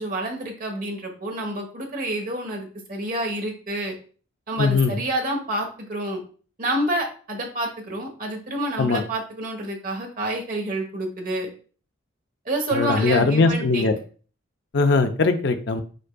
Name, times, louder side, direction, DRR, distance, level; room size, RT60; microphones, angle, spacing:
voice 1, 0.0-3.9 4.5-6.2 6.6-11.5 12.4-13.9, right 1 dB, 40° right, 2 dB, 1.1 m, -28 dB
voice 2, 4.6-5.0 8.8-9.0 12.7-13.9 14.7-15.8, left 3 dB, 55° left, 7 dB, 0.5 m, -20 dB
5.2 x 4.4 x 2.2 m, 0.39 s
head